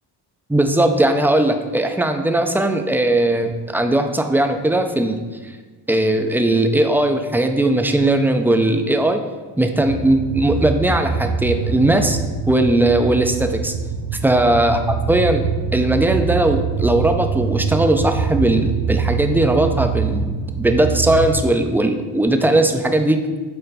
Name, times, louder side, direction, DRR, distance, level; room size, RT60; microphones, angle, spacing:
voice 1, 0.5-5.2 5.9-9.2 9.6-12.2 12.5-13.7 14.2-23.2, right 1 dB, 5° right, 6 dB, 0.4 m, -18 dB
sound 1, 9.8-21.4, right 6 dB, 40° right, 0.8 m, -24 dB
6.6 x 4.4 x 4.0 m, 1.4 s
cardioid pair, 110°, 46 cm